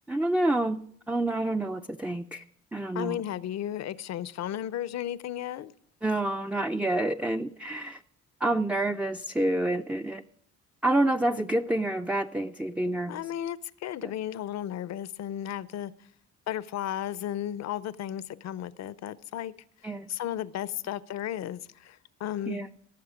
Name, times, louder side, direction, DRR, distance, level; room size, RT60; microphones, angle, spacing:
voice 1, 0.1-2.4 2.7-3.2 6.0-8.0 8.4-10.2 10.8-13.2 19.8-20.1 22.5-22.7, right 1 dB, 5° right, 0.4 m, -28 dB
voice 2, 2.9-5.7 13.1-15.9 16.5-19.5 20.1-22.7, left 11 dB, 60° left, 0.6 m, -34 dB
18.0 x 7.2 x 4.9 m
cardioid pair, 90°, 30 cm